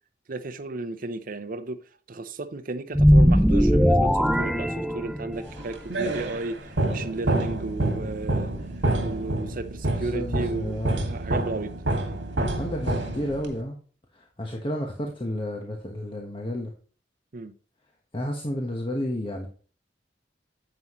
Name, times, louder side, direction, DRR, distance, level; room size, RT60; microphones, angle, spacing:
voice 1, 0.3-1.8 2.1-8.5 9.0-10.8 11.1-11.7 17.3-17.5, right 3 dB, 50° right, 0.7 m, -33 dB
sound 1, 2.9-5.5, equal, ahead, 0.3 m, -19 dB
sound 2, 5.5-13.6, right 1 dB, 80° right, 2.0 m, -28 dB
voice 2, 10.0-11.0 12.3-13.8 14.1-16.7 18.1-19.5, left 1 dB, 30° left, 1.2 m, -31 dB
9.6 x 7.3 x 3.1 m
head